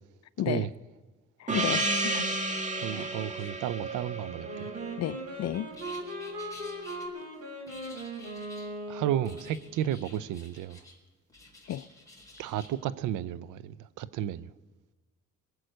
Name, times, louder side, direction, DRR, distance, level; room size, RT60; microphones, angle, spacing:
voice 1, 1.4-2.3 2.9-3.1 5.0-5.7 11.7-11.8, left 12 dB, 60° left, 0.5 m, -32 dB
Gong, 1.5-5.8, right 2 dB, 25° right, 1.6 m, -32 dB
voice 2, 2.8-4.7 8.9-10.8 12.4-14.5, right 11 dB, 90° right, 0.6 m, -33 dB
Wind instrument woodwind instrument, 4.4-9.6, right 1 dB, 55° right, 5.5 m, -39 dB
sound 1, 5.7-7.0 7.7-8.7 9.2-11.0 11.3-12.7, left 2 dB, 10° left, 4.1 m, -51 dB
23.0 x 7.9 x 6.4 m
cardioid pair, 90°, 30 cm